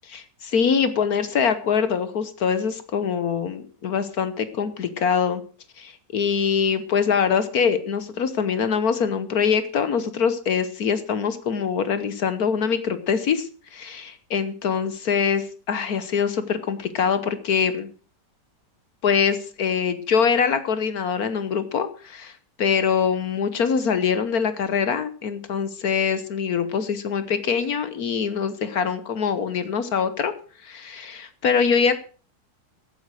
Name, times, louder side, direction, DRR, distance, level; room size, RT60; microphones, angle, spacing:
voice 1, 0.1-5.4 5.8-17.9 19.0-30.3 30.6-32.0, left 6 dB, 65° left, 12 dB, 1.4 m, -24 dB
15.0 x 8.4 x 6.3 m, 0.39 s
omnidirectional pair, 1.8 m